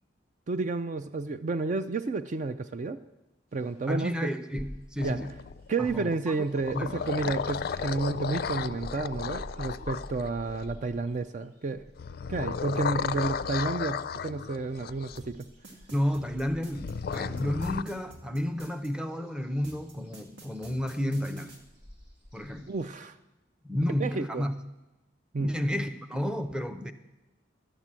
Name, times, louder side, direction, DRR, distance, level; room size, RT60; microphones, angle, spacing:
voice 1, 0.5-3.0 3.5-4.3 5.0-5.2 5.7-11.8 12.3-15.5 22.7-23.2 24.0-24.4 25.3-25.5, right 3 dB, 45° right, 12 dB, 0.4 m, -31 dB
sound 1, 3.5-5.2 5.6-22.9, equal, 60° right, 3.0 m, -50 dB
voice 2, 3.9-5.3 5.8-6.4 6.7-7.3 15.9-21.6 22.3-22.7 23.6-24.5 25.4-26.9, equal, 5° right, 9 dB, 0.7 m, -31 dB
sound 2, 5.0-5.9 6.5-10.7 12.0-15.2 16.8-17.8, left 6 dB, 55° left, 0.4 m, -34 dB
sound 3, 15.2-18.9 19.6-21.6, right 1 dB, 80° right, 2.0 m, -49 dB
12.0 x 8.3 x 7.4 m, 1.0 s
head